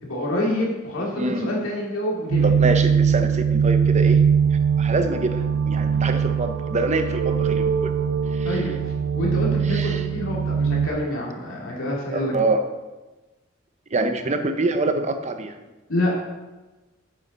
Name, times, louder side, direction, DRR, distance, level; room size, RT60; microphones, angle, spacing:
voice 1, 0.0-2.5 8.4-8.7 9.2-12.3 15.9-16.2, left 1 dB, 90° left, -3 dB, 2.5 m, -27 dB
voice 2, 1.2-1.5 2.4-4.2 4.5-7.9 8.3-8.6 9.6-10.0 12.1-12.6 13.9-15.5, right 2 dB, 35° right, 7 dB, 0.7 m, -25 dB
sound 1, 2.3-10.9, right 7 dB, 85° right, 0.5 m, -21 dB
8.3 x 7.0 x 4.1 m, 1.1 s
head